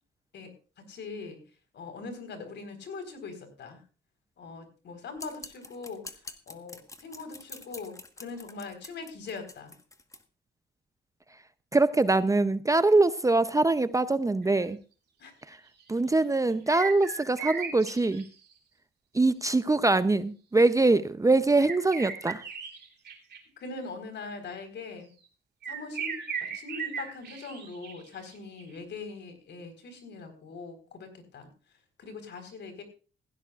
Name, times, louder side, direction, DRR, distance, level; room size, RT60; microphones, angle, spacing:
voice 1, 0.9-1.4 1.7-3.8 4.4-6.0 6.5-9.7 15.2-15.3 23.6-25.1 25.7-31.5 32.0-32.8, left 4 dB, 65° left, 4.1 m, -41 dB
sound 1, 5.2-10.2, left 2 dB, 15° left, 1.4 m, -46 dB
voice 2, 11.7-14.8 15.5-15.6 15.9-18.3 19.1-22.4, right 2 dB, 15° right, 0.6 m, -23 dB
sound 2, 14.4-14.6 15.7-15.8 16.5-18.3 21.6-23.4 25.6-28.2 28.6-28.7, right 6 dB, 55° right, 2.9 m, -37 dB
16.5 x 16.0 x 2.4 m
cardioid pair, 90°, 20 cm